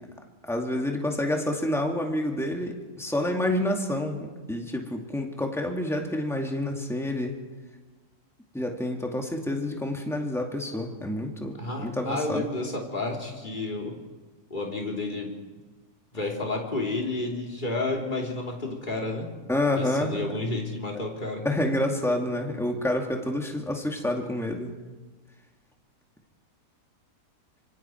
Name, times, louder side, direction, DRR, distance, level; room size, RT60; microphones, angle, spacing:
voice 1, 0.4-7.3 8.5-12.4 19.5-20.2 21.4-24.7, left 1 dB, ahead, 1 dB, 2.2 m, -28 dB
voice 2, 11.6-14.0 14.5-15.3 16.1-19.3 19.8-21.4, left 2 dB, 30° left, -1 dB, 3.3 m, -31 dB
26.0 x 24.0 x 4.6 m, 1.3 s
omnidirectional pair, 1.6 m